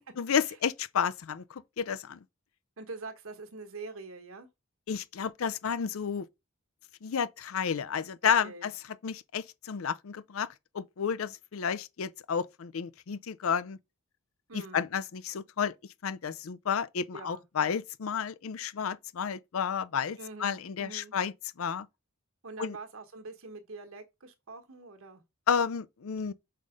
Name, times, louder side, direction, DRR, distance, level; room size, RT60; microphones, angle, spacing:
voice 1, 0.2-2.2 4.9-6.3 7.0-8.7 9.0-10.5 10.7-13.8 14.5-15.7 16.0-21.3 21.6-21.9 22.6-22.8 25.5-26.3, left 7 dB, 75° left, 0.5 m, -31 dB
voice 2, 2.8-4.5 8.2-8.7 14.5-14.8 17.1-17.4 20.2-21.1 22.4-25.2, right 3 dB, 75° right, 1.3 m, -44 dB
5.6 x 4.0 x 5.0 m
head